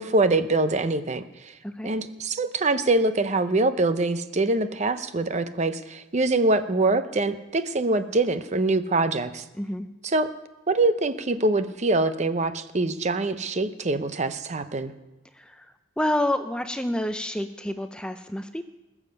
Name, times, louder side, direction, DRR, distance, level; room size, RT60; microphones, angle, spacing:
voice 1, 0.0-1.5 1.8-9.4 10.0-10.3 10.7-14.9, right 2 dB, 35° right, 11 dB, 0.7 m, -24 dB
voice 2, 9.5-9.9 15.3-15.7 16.0-18.7, left 1 dB, 5° left, 8 dB, 0.5 m, -28 dB
21.0 x 7.3 x 6.8 m, 1.0 s
head